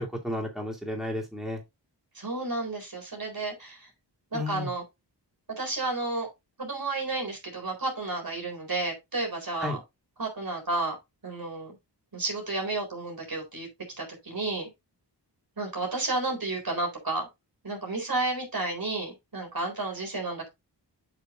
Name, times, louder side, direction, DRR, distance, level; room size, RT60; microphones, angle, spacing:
voice 1, 0.0-1.6 4.3-4.7 9.6-9.8, left 1 dB, ahead, 2.5 m, -32 dB
voice 2, 2.1-3.9 4.3-4.8 5.6-6.3 6.6-9.8 10.2-10.9 11.2-11.8 12.1-13.7 14.0-14.7 15.6-17.3 17.6-20.5, right 2 dB, 55° right, 3.9 m, -31 dB
8.4 x 6.0 x 2.5 m
wide cardioid pair, 75°, 43 cm